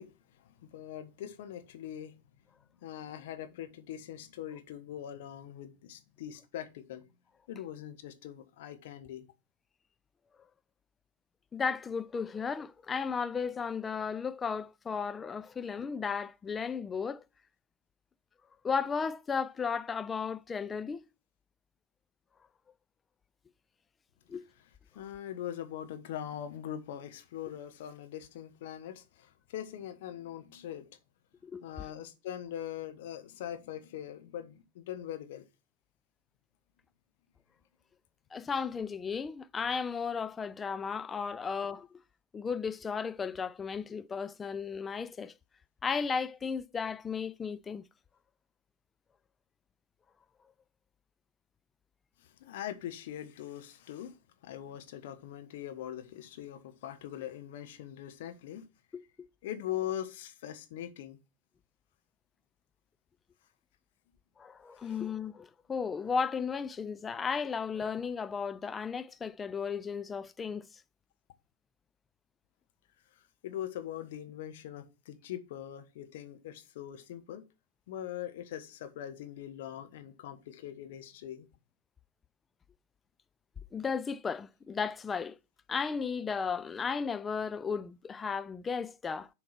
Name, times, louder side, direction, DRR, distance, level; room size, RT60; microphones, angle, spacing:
voice 1, 0.0-2.2 2.8-7.0 7.5-9.2 24.9-30.9 31.6-35.4 52.2-54.2 54.4-58.6 59.4-61.2 64.8-65.0 73.2-77.4 77.9-81.5, left 11 dB, 55° left, 1.2 m, -42 dB
voice 2, 11.5-17.2 18.6-21.0 24.3-24.4 31.4-31.6 38.3-41.9 42.3-45.3 45.8-47.9 58.9-59.3 64.4-70.7 83.7-85.4 85.7-89.3, left 6 dB, 20° left, 0.4 m, -34 dB
7.6 x 4.6 x 5.8 m
figure-of-eight pair, 90°, 0 cm